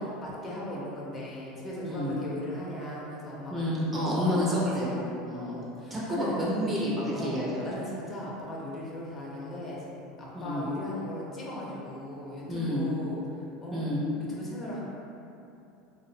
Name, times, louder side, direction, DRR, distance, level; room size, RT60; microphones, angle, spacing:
voice 1, 0.2-3.8 4.0-5.0 5.3-6.4 7.1-9.9 10.2-13.9 14.3-14.8, left 1 dB, 30° left, -5 dB, 0.6 m, -38 dB
voice 2, 1.8-2.1 3.5-5.6 5.9-7.7 10.3-10.6 12.5-12.8 13.7-14.0, equal, 20° right, -6 dB, 0.5 m, -29 dB
2.4 x 2.0 x 2.6 m, 2.7 s
supercardioid pair, 110°, 0 cm